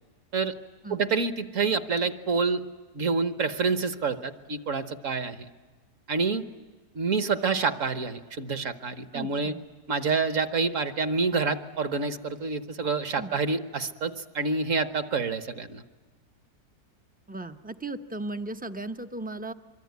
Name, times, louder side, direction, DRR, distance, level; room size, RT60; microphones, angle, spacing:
voice 1, 0.9-2.6 2.9-5.5 6.1-6.4 6.9-9.5 9.9-15.8, right 4 dB, 55° right, 10 dB, 1.5 m, -27 dB
voice 2, 9.1-9.6 13.2-13.4 17.3-19.5, right 2 dB, 15° right, 8 dB, 0.3 m, -36 dB
24.5 x 24.5 x 9.4 m, 1.3 s
omnidirectional pair, 1.7 m